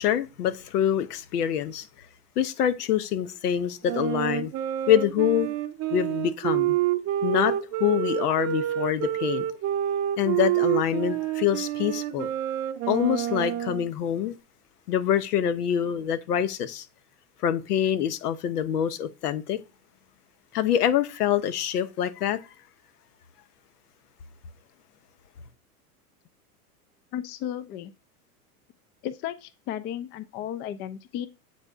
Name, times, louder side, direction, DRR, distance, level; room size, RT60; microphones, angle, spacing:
voice 1, 0.0-1.9 2.4-4.5 4.9-5.5 5.9-6.8 7.2-9.5 10.2-12.3 12.9-14.4 14.9-16.8 17.4-19.6 20.5-22.4, left 10 dB, 75° left, 0.9 m, -25 dB
Wind instrument woodwind instrument, 3.8-13.9, right 12 dB, 35° right, 0.6 m, -28 dB
voice 2, 27.1-27.9 29.0-31.3, left 10 dB, 25° left, 0.3 m, -34 dB
8.0 x 4.3 x 3.5 m
hypercardioid pair, 100°, 46 cm